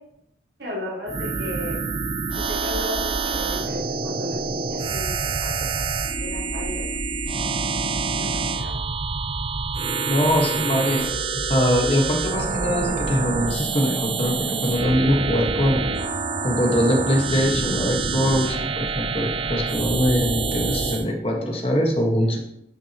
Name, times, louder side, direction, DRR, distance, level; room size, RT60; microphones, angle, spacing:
voice 1, 0.6-1.8 2.3-7.2 8.1-8.8, left 1 dB, 70° right, -3 dB, 1.9 m, -35 dB
sound 1, 1.1-21.0, right 4 dB, 30° right, 0.4 m, -26 dB
voice 2, 10.1-15.8 16.4-22.4, equal, 30° left, 1 dB, 1.3 m, -22 dB
10.5 x 6.1 x 2.9 m, 0.77 s
head